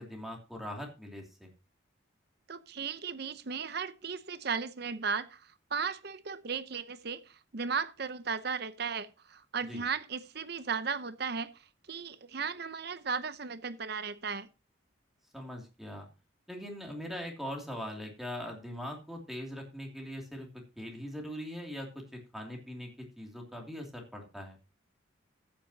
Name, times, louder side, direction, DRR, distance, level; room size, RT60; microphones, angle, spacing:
voice 1, 0.0-1.5 9.7-9.8 15.3-16.1 16.5-20.5 20.8-22.9 23.2-24.6, equal, ahead, 2.7 m, -41 dB
voice 2, 2.5-14.5, right 5 dB, 55° right, 0.8 m, -36 dB
14.5 x 8.9 x 2.9 m
head